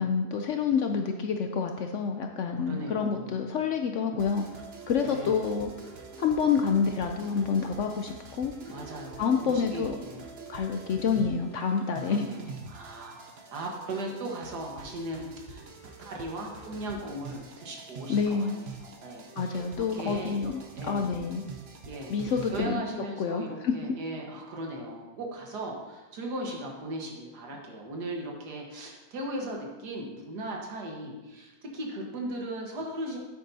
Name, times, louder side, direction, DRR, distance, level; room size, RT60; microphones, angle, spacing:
voice 1, 0.0-4.5 4.9-5.7 6.2-8.5 9.2-9.9 10.5-12.3 18.1-18.6 19.4-21.4 22.1-22.8 23.2-23.7, left 6 dB, 70° left, 4 dB, 0.7 m, -28 dB
voice 2, 2.6-3.5 5.0-5.5 8.7-10.2 12.0-13.2 13.5-15.2 15.5-15.7 16.0-21.2 21.9-33.2, right 1 dB, 80° right, 0 dB, 2.0 m, -38 dB
sound 1, 4.2-22.6, right 4 dB, 45° right, 1.0 m, -45 dB
9.3 x 8.5 x 2.7 m, 1.1 s
omnidirectional pair, 1.7 m